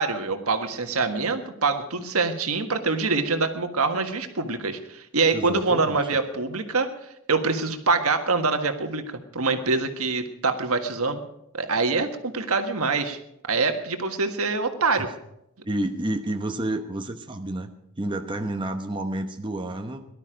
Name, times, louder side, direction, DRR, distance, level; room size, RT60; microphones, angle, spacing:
voice 1, 0.0-6.9 7.3-9.0 9.3-11.2 11.5-13.2 13.5-15.1, right 4 dB, 75° right, 6 dB, 1.6 m, -25 dB
voice 2, 5.3-6.0 15.0-15.1 15.6-17.7 18.0-20.0, right 1 dB, 20° right, 5 dB, 1.0 m, -30 dB
18.5 x 12.0 x 5.1 m, 0.81 s
head